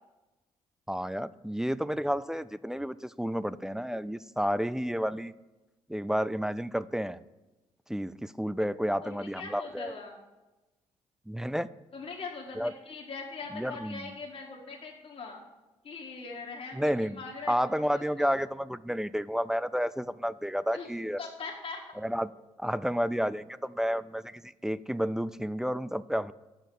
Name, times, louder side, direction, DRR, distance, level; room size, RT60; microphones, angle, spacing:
voice 1, 0.9-5.3 5.9-7.2 7.9-10.0 11.3-11.7 12.6-12.7 13.5-14.1 16.7-17.2 17.5-21.2 22.0-22.3 22.6-26.3, equal, 5° right, 17 dB, 0.3 m, -31 dB
voice 2, 9.0-10.2 11.9-15.4 15.8-18.3 20.7-20.9 21.2-21.8, left 4 dB, 45° left, -2 dB, 1.6 m, -41 dB
6.4 x 6.3 x 6.8 m, 1.1 s
hypercardioid pair, 55°, 14 cm